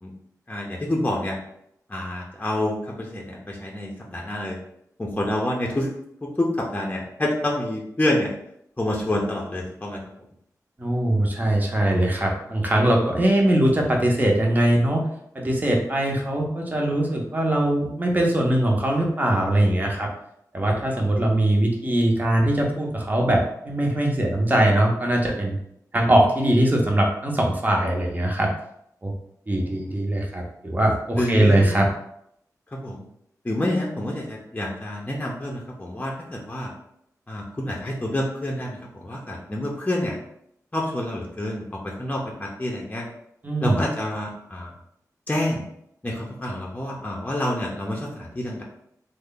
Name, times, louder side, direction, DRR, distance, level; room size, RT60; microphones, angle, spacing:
voice 1, 0.5-1.4 1.9-4.6 5.0-5.9 6.2-8.3 8.8-10.0 29.6-30.0 31.1-31.8 32.7-33.0 33.4-36.7 37.3-40.2 40.7-43.0 43.6-44.7 45.3-45.6 46.0-48.6, left 1 dB, 20° left, -2 dB, 0.7 m, -28 dB
voice 2, 10.8-15.1 15.3-20.1 20.5-25.6 25.9-28.5 29.0-29.1 29.5-31.9 43.4-43.8, right 1 dB, 25° right, 0 dB, 0.8 m, -21 dB
3.2 x 2.1 x 3.8 m, 0.74 s
wide cardioid pair, 65°, 7 cm